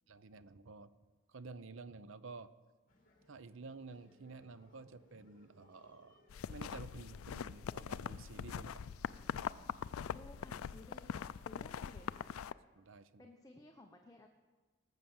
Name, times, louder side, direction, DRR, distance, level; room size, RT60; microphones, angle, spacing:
voice 1, 0.1-0.9 1.3-2.5 3.3-6.2 6.5-8.9 12.7-13.3, right 3 dB, 65° right, 14 dB, 0.7 m, -51 dB
sound 1, 2.9-12.5, left 1 dB, 40° left, 2.4 m, -69 dB
sound 2, 3.6-12.0, equal, 25° right, 3.2 m, -73 dB
sound 3, 6.3-12.5, left 7 dB, 80° left, 0.4 m, -42 dB
voice 2, 10.1-12.4 13.2-14.3, left 2 dB, 15° left, 3 dB, 0.8 m, -57 dB
18.5 x 7.7 x 7.2 m, 1.3 s
head